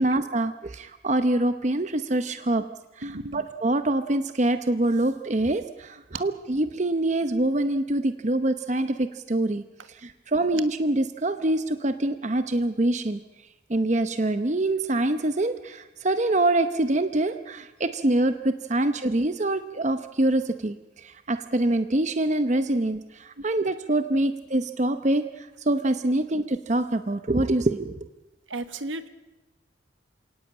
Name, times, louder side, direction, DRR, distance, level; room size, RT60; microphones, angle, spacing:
voice 1, 0.0-2.6 3.3-9.6 10.0-13.2 13.7-20.7 21.3-25.3 25.7-28.0, right 1 dB, 35° right, 9 dB, 0.8 m, -25 dB
voice 2, 3.0-3.5 8.8-8.9 24.1-24.2 28.5-29.1, right 2 dB, 75° right, 10 dB, 1.5 m, -35 dB
28.0 x 18.0 x 8.6 m, 1.1 s
head